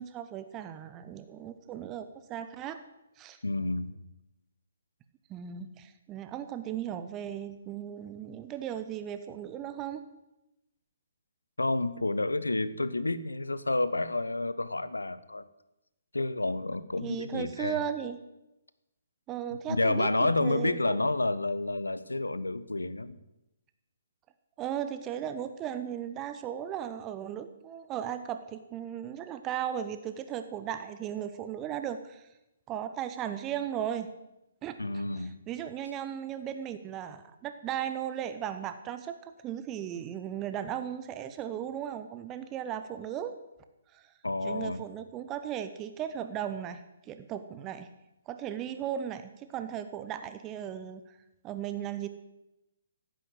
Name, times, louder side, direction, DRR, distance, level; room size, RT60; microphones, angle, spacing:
voice 1, 0.0-2.8 3.2-3.4 5.3-10.0 17.0-18.2 19.3-21.0 24.6-32.3 32.7-34.1 34.6-34.8 35.2-43.4 43.9-44.1 44.4-47.9 48.3-51.2 51.4-52.1, right 10 dB, 20° right, 10 dB, 0.8 m, -36 dB
voice 2, 3.4-4.0 11.6-15.4 16.1-17.8 19.5-23.2 34.8-35.4 44.2-44.8, left 2 dB, 75° left, 15 dB, 1.0 m, -30 dB
15.5 x 9.4 x 7.9 m, 0.91 s
figure-of-eight pair, 130°, 0 cm